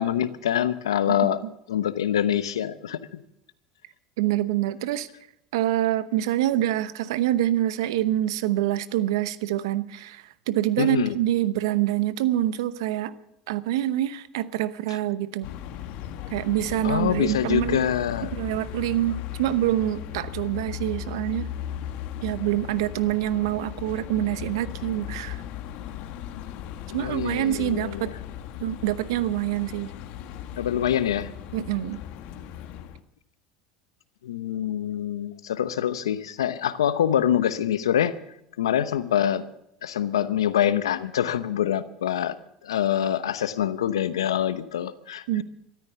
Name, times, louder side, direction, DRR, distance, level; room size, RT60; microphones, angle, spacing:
voice 1, 0.0-1.4 1.7-3.2 10.8-11.2 16.8-18.3 26.9-28.1 30.6-31.3 34.2-38.1 38.6-39.4 39.8-42.4 42.6-45.4, left 10 dB, 90° left, 14 dB, 0.9 m, -25 dB
voice 2, 4.2-5.1 5.5-13.1 13.5-15.5 16.3-17.8 18.2-21.5 22.2-25.4 26.9-28.1 28.6-29.9 31.5-32.0 45.3-45.4, right 13 dB, 75° right, 15 dB, 0.9 m, -26 dB
sound 1, 15.4-33.0, left 11 dB, 65° left, 1.3 m, -37 dB
14.0 x 13.0 x 6.8 m, 0.79 s
hypercardioid pair, 85°, 3 cm